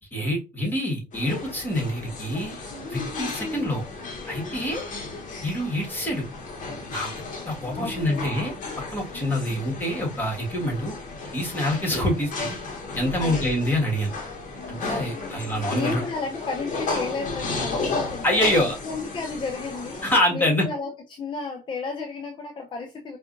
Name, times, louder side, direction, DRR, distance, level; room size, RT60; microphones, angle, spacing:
voice 1, 0.1-2.6 2.9-3.8 4.3-4.8 5.4-6.2 6.9-8.5 8.9-10.9 11.3-12.6 12.9-14.1 14.7-16.0 18.2-18.8 20.0-20.7, left 1 dB, 10° left, -2 dB, 1.7 m, -26 dB
Mishio Bern Kitchen and Restaurant, 1.1-20.2, left 3 dB, 50° left, 1.0 m, -34 dB
voice 2, 7.8-8.2 13.2-13.4 14.8-15.3 15.7-20.0 20.3-23.2, left 4 dB, 30° left, 3 dB, 0.6 m, -33 dB
4.7 x 2.5 x 2.5 m, 0.29 s
cardioid pair, 110°, 17 cm